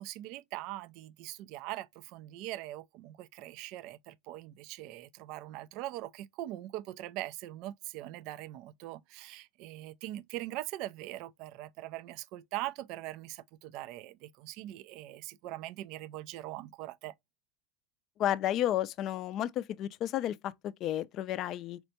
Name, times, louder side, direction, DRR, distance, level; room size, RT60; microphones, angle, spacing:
voice 1, 0.0-17.1, right 15 dB, 60° right, 0.3 m, -42 dB
voice 2, 18.2-21.8, left 12 dB, 50° left, 0.4 m, -32 dB
4.4 x 2.1 x 2.6 m
hypercardioid pair, 100°, 0 cm